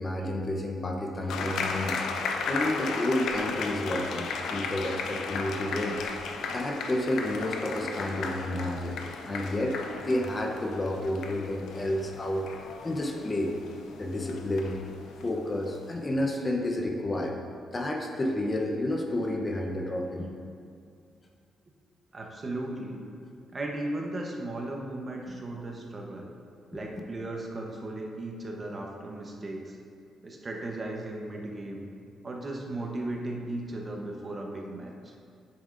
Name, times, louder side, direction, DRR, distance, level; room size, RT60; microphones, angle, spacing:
voice 1, 0.0-6.0 6.5-9.8 10.0-12.4 12.8-13.5 14.0-14.8 15.2-17.4 17.7-20.3 26.7-26.8, left 1 dB, 25° left, 1 dB, 0.7 m, -30 dB
sound 1, 1.3-16.2, left 4 dB, 80° left, 0.6 m, -35 dB
voice 2, 22.1-23.0 23.5-26.3 26.7-29.8 30.2-31.8 32.2-35.1, right 2 dB, 30° right, 0 dB, 0.8 m, -36 dB
8.7 x 6.9 x 2.5 m, 2.3 s
cardioid pair, 115°, 0 cm